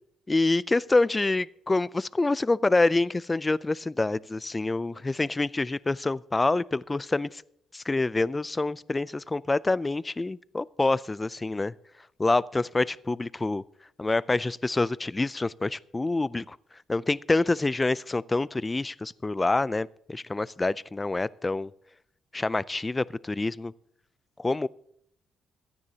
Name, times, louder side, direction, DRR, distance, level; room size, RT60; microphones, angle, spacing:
voice 1, 0.3-7.4 7.7-11.7 12.2-13.6 14.0-16.6 16.9-21.7 22.3-23.7 24.4-24.7, left 2 dB, 20° left, 0.4 m, -26 dB
24.0 x 9.7 x 2.8 m
cardioid pair, 90°, 0 cm